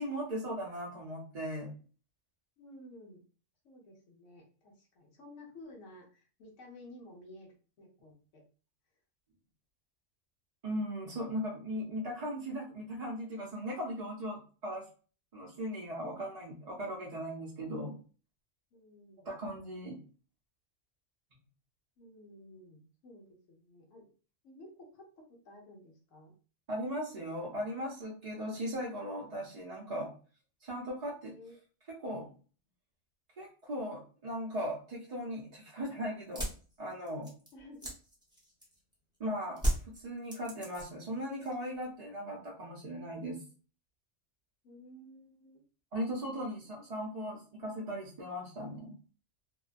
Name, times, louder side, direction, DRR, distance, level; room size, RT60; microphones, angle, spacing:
voice 1, 0.0-1.7 10.6-14.9 15.3-17.9 19.2-20.0 26.7-30.1 30.6-31.3 32.0-32.3 33.4-36.5 36.8-37.3 39.2-43.4 45.9-49.0, equal, 45° right, -4 dB, 0.5 m, -38 dB
voice 2, 2.6-3.2 3.6-8.4 18.7-19.3 22.0-24.1 24.4-26.3 31.3-31.5 37.5-37.9 44.6-45.6 46.3-46.8, left 1 dB, 85° left, -1 dB, 1.1 m, -54 dB
sound 1, 36.2-38.9 39.6-41.1 41.4-42.0, right 1 dB, 5° right, 0.6 m, -35 dB
2.6 x 2.2 x 2.4 m, 0.38 s
omnidirectional pair, 1.3 m